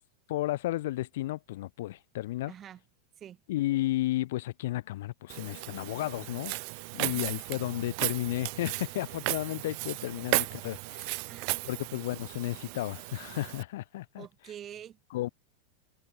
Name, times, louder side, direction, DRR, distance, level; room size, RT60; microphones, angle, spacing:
voice 1, 0.3-2.5 3.5-6.5 6.9-11.1 11.7-14.2 15.1-15.3, left 16 dB, 65° left, 1.3 m, -33 dB
voice 2, 2.5-2.8 3.2-3.4 7.0-7.4 11.3-11.7 14.2-15.0, right 10 dB, 20° right, 4.0 m, -46 dB
Walk footsteps, 5.3-13.6, right 39 dB, 45° right, 1.0 m, -35 dB
supercardioid pair, 170°, 0 cm